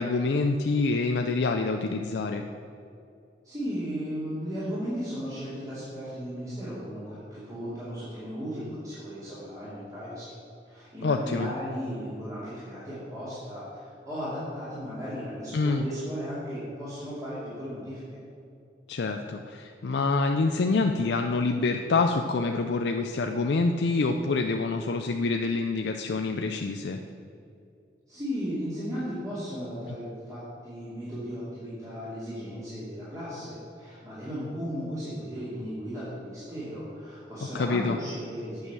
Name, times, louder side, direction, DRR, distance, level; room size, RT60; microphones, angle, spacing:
voice 1, 0.0-2.4 11.0-11.5 15.5-15.8 18.9-27.0 37.5-38.0, left 3 dB, 70° left, 4 dB, 0.5 m, -26 dB
voice 2, 3.4-10.3 10.6-18.2 28.1-38.7, equal, 20° right, -11 dB, 2.6 m, -36 dB
8.8 x 6.4 x 6.8 m, 2.5 s
head